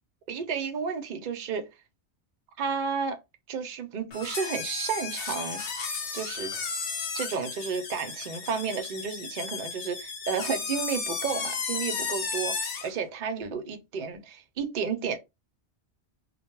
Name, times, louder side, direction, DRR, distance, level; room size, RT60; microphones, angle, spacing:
voice 1, 0.3-1.7 2.6-3.2 3.5-5.7 6.1-6.5 7.1-15.2, right 6 dB, 55° right, 0.6 m, -32 dB
sound 1, 4.1-12.9, left 5 dB, 75° left, 1.0 m, -34 dB
2.2 x 2.0 x 3.0 m
omnidirectional pair, 1.2 m